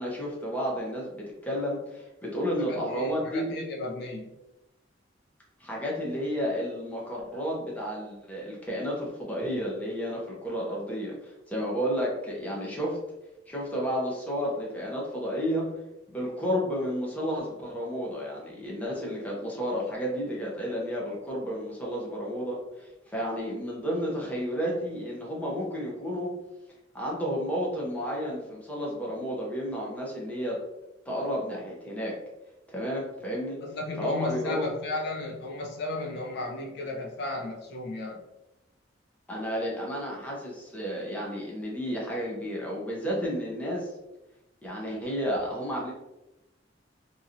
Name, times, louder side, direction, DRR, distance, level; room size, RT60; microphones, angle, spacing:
voice 1, 0.0-3.6 5.6-13.0 13.5-15.7 16.1-26.3 26.9-30.6 31.1-32.1 32.7-33.6 34.0-34.7 39.3-43.9 44.6-45.9, equal, 10° left, -4 dB, 0.7 m, -31 dB
voice 2, 2.7-4.3 33.6-38.2, left 2 dB, 60° left, 0 dB, 0.4 m, -34 dB
2.8 x 2.7 x 2.5 m, 0.97 s
head